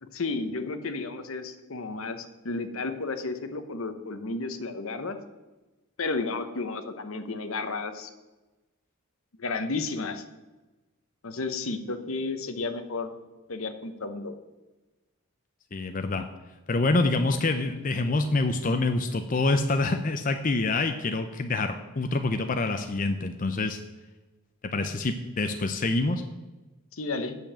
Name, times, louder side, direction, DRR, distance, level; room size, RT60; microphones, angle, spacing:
voice 1, 0.0-5.2 6.0-8.1 9.4-10.2 11.2-13.2 13.5-14.4 26.9-27.4, left 3 dB, 75° left, 9 dB, 0.9 m, -32 dB
voice 2, 15.7-16.3 16.7-23.8 24.7-26.2, left 3 dB, 40° left, 7 dB, 0.5 m, -26 dB
8.2 x 6.9 x 7.3 m, 1.1 s
head